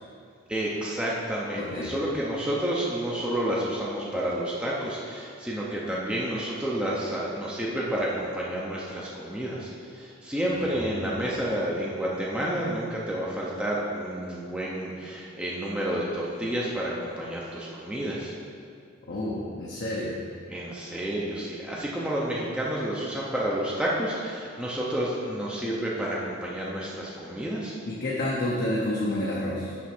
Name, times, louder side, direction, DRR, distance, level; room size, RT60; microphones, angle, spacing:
voice 1, 0.5-18.3 20.5-27.8, right 1 dB, 5° right, -5 dB, 0.6 m, -30 dB
voice 2, 1.6-1.9 10.5-11.3 19.0-20.2 27.9-29.7, left 1 dB, 50° left, -5 dB, 0.8 m, -30 dB
6.0 x 4.4 x 5.9 m, 2.3 s
head